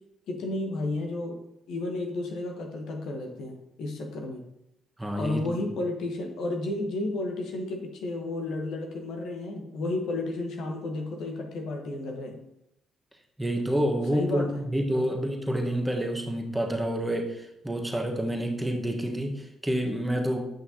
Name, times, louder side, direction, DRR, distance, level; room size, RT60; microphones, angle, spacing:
voice 1, 0.3-1.4 1.7-4.4 5.1-12.4 14.1-14.6 14.9-15.1, left 2 dB, 70° left, 3 dB, 1.1 m, -32 dB
voice 2, 5.0-5.5 13.4-20.4, right 1 dB, 10° right, 2 dB, 1.3 m, -28 dB
8.7 x 5.7 x 2.8 m, 0.83 s
hypercardioid pair, 45°, 0 cm